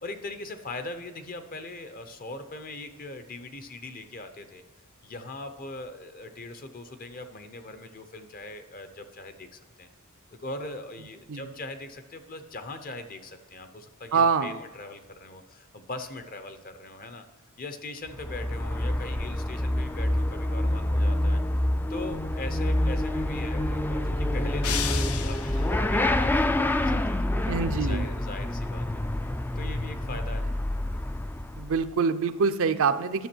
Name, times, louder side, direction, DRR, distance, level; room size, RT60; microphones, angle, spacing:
voice 1, 0.0-4.6 5.0-9.9 10.4-17.2 17.6-21.4 21.9-27.3 27.8-28.9 29.6-30.5, left 2 dB, 40° left, 9 dB, 0.8 m, -40 dB
voice 2, 14.1-14.6 27.5-28.0 31.6-33.3, right 5 dB, 70° right, 10 dB, 0.5 m, -25 dB
Motorcycle / Accelerating revving vroom, 18.1-31.9, left 1 dB, 10° left, 0.3 m, -27 dB
sound 1, 24.6-25.9, left 9 dB, 80° left, 0.6 m, -33 dB
10.5 x 6.7 x 4.5 m, 1.4 s
head